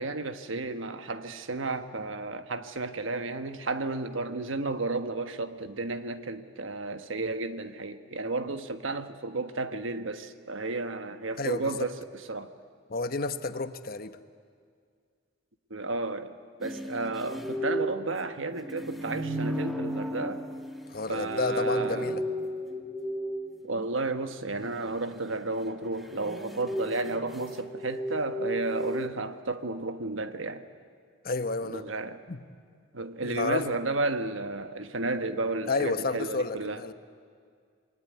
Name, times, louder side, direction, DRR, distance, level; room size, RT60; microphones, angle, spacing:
voice 1, 0.0-12.5 15.7-16.3 16.6-20.4 21.1-22.1 23.6-30.6 31.6-32.2 32.9-36.9, right 3 dB, 80° right, 1.4 m, -32 dB
voice 2, 11.4-11.9 12.9-14.2 20.9-22.2 31.2-31.8 32.3-32.4 33.2-33.8 35.7-36.9, left 3 dB, 50° left, 1.1 m, -31 dB
sound 1, 16.6-23.9 25.8-29.1, equal, ahead, 1.6 m, -34 dB
28.0 x 21.5 x 9.5 m
head